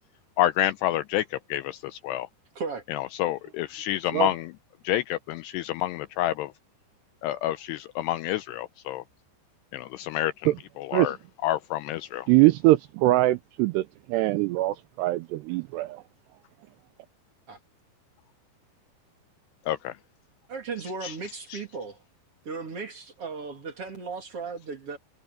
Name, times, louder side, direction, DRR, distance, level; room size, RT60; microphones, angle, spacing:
voice 1, 0.4-2.3 2.9-4.5 4.8-6.5 7.2-9.0 9.7-11.2 11.4-12.3 19.7-20.0 21.0-21.2 21.5-21.6, left 14 dB, 85° left, 2.4 m, -28 dB
voice 2, 12.3-13.8 14.1-16.0, right 18 dB, 85° right, 2.5 m, -22 dB
voice 3, 20.5-22.0 22.4-25.0, right 4 dB, 40° right, 2.5 m, -36 dB
omnidirectional pair, 5.3 m